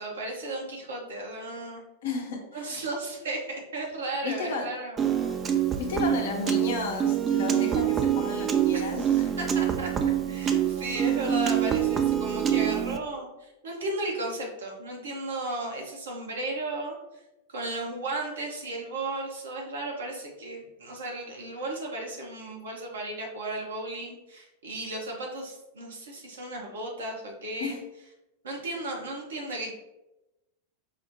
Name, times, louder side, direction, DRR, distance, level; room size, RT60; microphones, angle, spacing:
voice 1, 0.0-1.8 2.5-5.1 8.7-9.9 10.3-17.2 17.5-27.8 28.4-29.7, right 2 dB, 65° right, -1 dB, 0.8 m, -35 dB
voice 2, 2.0-2.8 4.2-4.7 5.8-9.3 27.6-27.8, left 4 dB, 60° left, 2 dB, 0.6 m, -33 dB
Piano, 5.0-13.0, right 10 dB, 25° right, 0.3 m, -26 dB
4.9 x 2.1 x 2.8 m, 0.96 s
figure-of-eight pair, 90°, 0 cm